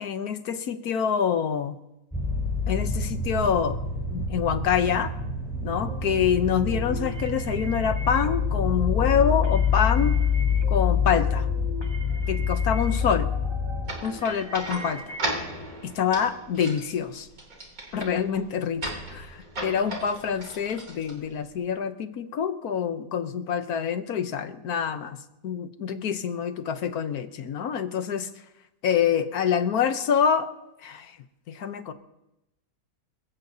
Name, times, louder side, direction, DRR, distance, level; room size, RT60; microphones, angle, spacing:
voice 1, 0.0-1.8 2.7-3.8 4.1-5.1 5.6-10.2 10.7-11.5 12.3-13.3 14.0-15.1 15.8-17.3 17.9-18.8 19.1-25.2 25.4-28.3 28.8-30.5 30.8-31.1 31.5-31.9, left 7 dB, 80° left, 9 dB, 1.4 m, -26 dB
sound 1, 2.1-13.9, left 5 dB, 5° left, 4.3 m, -26 dB
sound 2, 5.9-15.4, right 1 dB, 15° right, 1.6 m, -42 dB
sound 3, 13.8-21.7, right 1 dB, 65° right, 3.8 m, -37 dB
25.5 x 16.0 x 2.8 m, 0.92 s
omnidirectional pair, 1.6 m